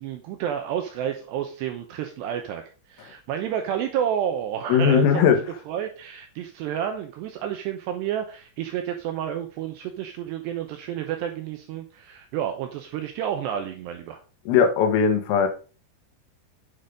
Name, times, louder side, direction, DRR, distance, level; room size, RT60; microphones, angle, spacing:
voice 1, 0.0-5.1 5.7-14.2, right 9 dB, 80° right, 6 dB, 2.5 m, -30 dB
voice 2, 4.7-5.4 14.5-15.5, left 7 dB, 85° left, 6 dB, 4.2 m, -19 dB
9.3 x 6.6 x 5.1 m, 0.36 s
omnidirectional pair, 5.9 m